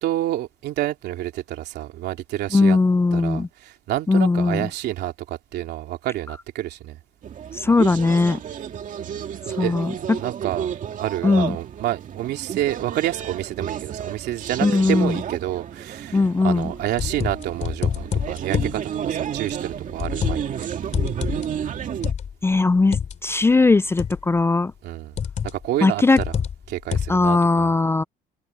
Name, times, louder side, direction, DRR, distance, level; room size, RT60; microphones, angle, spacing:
voice 1, 0.0-2.8 3.1-7.0 9.0-9.8 10.2-20.7 24.8-25.2 25.4-26.4 26.7-27.7, right 14 dB, 75° right, 3.0 m, -29 dB
voice 2, 2.5-3.5 4.1-4.7 7.5-8.4 9.6-9.9 11.2-11.6 14.6-15.1 16.1-16.7 22.4-24.7 25.8-26.2 27.1-28.0, left 3 dB, 15° left, 0.5 m, -19 dB
sound 1, 7.2-22.1, right 9 dB, 50° right, 2.2 m, -32 dB
sound 2, 16.6-18.8 19.5-20.6 20.9-23.2 24.0-24.4 25.2-25.7 26.2-27.3, left 7 dB, 45° left, 2.9 m, -27 dB
cardioid pair, 110°, 17 cm